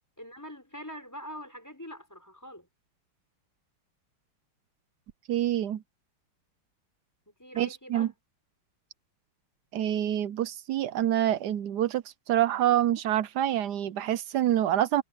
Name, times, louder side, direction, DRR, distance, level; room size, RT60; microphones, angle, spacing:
voice 1, 0.2-2.7 7.3-8.1, equal, 5° left, 5.1 m, -44 dB
voice 2, 5.3-5.8 7.5-8.1 9.7-15.0, right 12 dB, 70° right, 1.0 m, -26 dB
omnidirectional pair, 2.4 m